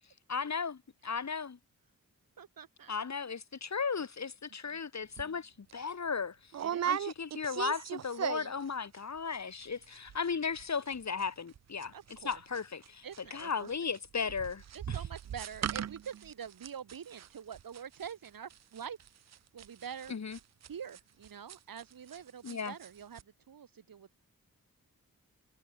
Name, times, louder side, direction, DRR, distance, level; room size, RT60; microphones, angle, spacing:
voice 1, 0.3-1.6 2.9-6.4 6.8-13.1 13.3-15.0 20.1-20.4 22.4-22.7, left 5 dB, 55° left, 1.8 m, -36 dB
voice 2, 2.4-2.9 6.6-7.0 11.9-12.4 13.0-13.7 14.7-19.0 19.5-20.2 20.6-23.2 23.5-24.2, right 8 dB, 85° right, 1.4 m, -45 dB
sound 1, 5.2-5.3 5.7-5.9 6.5-8.7 8.9-9.4 9.6-9.7 9.9-10.3 10.6-22.2 22.5-22.9 23.2-23.3, right 10 dB, 55° right, 0.4 m, -38 dB
wide cardioid pair, 100°, 33 cm